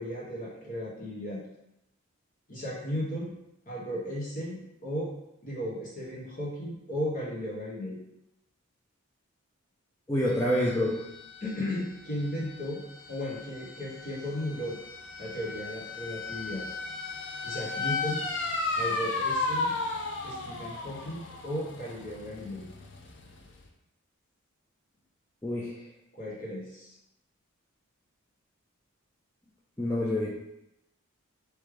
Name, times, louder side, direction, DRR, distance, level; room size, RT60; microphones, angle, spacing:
voice 1, 0.0-1.4 2.5-3.3 3.7-5.1 5.4-8.0 11.4-12.8 13.1-14.8 15.2-16.7 17.4-18.2 18.8-19.7 20.2-22.7 26.1-26.9, equal, 40° left, -5 dB, 1.3 m, -35 dB
voice 2, 10.1-11.0 25.4-25.7 29.8-30.3, left 1 dB, 10° left, -7 dB, 0.5 m, -27 dB
sound 1, 10.3-23.6, left 3 dB, 55° left, 0.6 m, -35 dB
4.9 x 3.2 x 3.3 m, 0.84 s
head